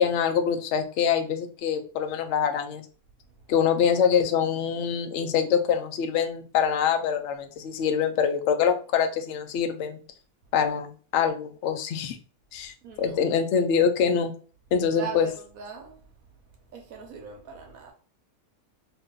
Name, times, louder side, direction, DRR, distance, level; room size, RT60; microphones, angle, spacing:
voice 1, 0.0-2.8 3.5-10.0 10.5-12.2 12.5-14.3 14.7-15.3, left 7 dB, 65° left, 0.7 m, -24 dB
voice 2, 12.8-13.2 14.9-16.0 16.7-17.9, right 6 dB, 70° right, 1.1 m, -40 dB
2.9 x 2.8 x 3.7 m
omnidirectional pair, 1.6 m